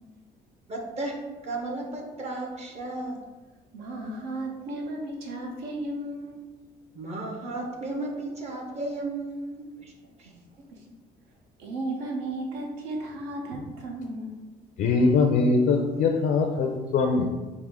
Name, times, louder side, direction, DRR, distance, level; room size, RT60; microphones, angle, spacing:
voice 1, 0.7-3.2 6.9-9.9 10.2-10.3, right 2 dB, 40° right, 2 dB, 0.7 m, -34 dB
voice 2, 3.7-6.6 10.7-10.8 11.6-14.4, right 1 dB, 90° right, 1 dB, 0.8 m, -34 dB
voice 3, 14.8-17.3, left 4 dB, 65° left, 2 dB, 0.4 m, -22 dB
4.6 x 2.1 x 3.5 m, 1.2 s
cardioid pair, 110°, 17 cm